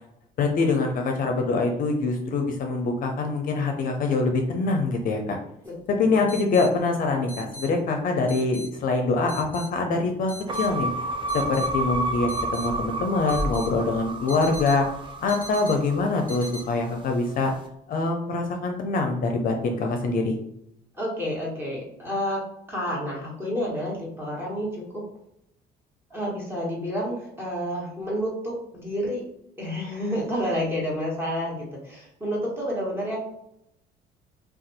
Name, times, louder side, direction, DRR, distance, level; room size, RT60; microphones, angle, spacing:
voice 1, 0.4-5.4 5.9-10.9 11.3-14.9 15.2-17.5 17.9-20.4, left 3 dB, 55° left, 3 dB, 0.6 m, -24 dB
sound 1, 5.6-5.7 6.3-6.7 7.3-7.7 8.3-8.7 9.3-9.7 10.3-10.7 11.3-11.7 12.3-12.7 13.3-13.7 14.3-14.8 15.3-15.8 16.3-16.6, right 1 dB, 10° left, 1.4 m, -39 dB
sound 2, 10.5-16.8, right 1 dB, 30° right, 0.6 m, -30 dB
voice 2, 20.9-22.4 22.7-25.0 26.1-29.2 29.6-33.2, equal, 15° right, -4 dB, 1.4 m, -29 dB
2.5 x 2.3 x 4.0 m, 0.79 s
cardioid pair, 110°, 17 cm